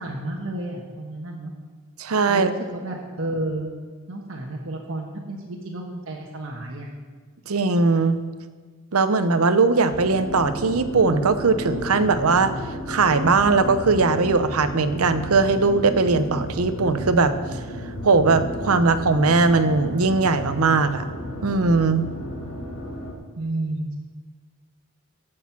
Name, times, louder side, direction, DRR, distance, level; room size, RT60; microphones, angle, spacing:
voice 1, 0.0-1.5 2.3-3.7 4.1-6.9 23.4-23.9, right 1 dB, 60° right, -1 dB, 1.3 m, -31 dB
voice 2, 2.0-2.5 7.5-8.2 8.9-12.5 12.9-17.3 18.0-21.0 21.4-22.1, right 4 dB, 85° right, 11 dB, 0.8 m, -19 dB
sound 1, 9.9-23.1, equal, 65° left, 1.7 m, -33 dB
14.5 x 6.4 x 6.0 m, 1.5 s
head